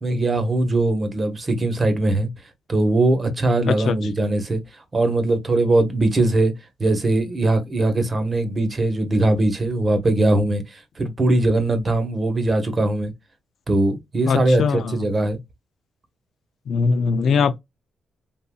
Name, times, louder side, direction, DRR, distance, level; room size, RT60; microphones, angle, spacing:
voice 1, 0.0-2.3 2.7-4.6 4.9-6.5 6.8-13.1 13.7-15.4, right 2 dB, 35° right, 1.1 m, -20 dB
voice 2, 3.7-4.0 14.3-15.0 16.7-17.6, left 5 dB, 70° left, 0.4 m, -21 dB
3.8 x 2.7 x 2.3 m
cardioid pair, 80°, 0 cm